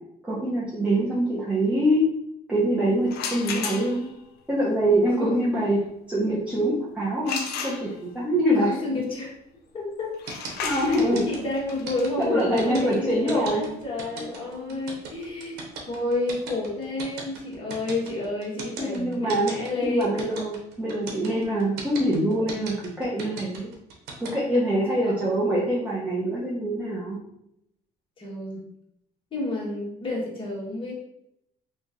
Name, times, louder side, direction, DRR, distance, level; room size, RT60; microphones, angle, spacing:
voice 1, 0.2-2.1 2.5-4.1 4.5-5.8 6.1-8.8 10.6-11.3 12.2-13.6 14.2-14.8 18.8-19.5 19.8-23.7 24.2-27.2, right 1 dB, 5° right, -7 dB, 0.9 m, -24 dB
sound 1, 3.1-4.2 7.2-8.3 10.1-15.8, left 6 dB, 75° left, 0.6 m, -35 dB
voice 2, 3.5-3.8 5.2-5.4 8.5-9.3 9.7-10.1 10.9-11.0 11.2-20.1 25.0-25.1 28.2-28.6 29.3-30.9, left 2 dB, 30° left, -3 dB, 1.3 m, -30 dB
sound 2, 10.3-24.3, right 4 dB, 80° right, 0.8 m, -37 dB
3.0 x 2.5 x 3.7 m, 0.78 s
cardioid pair, 110°, 17 cm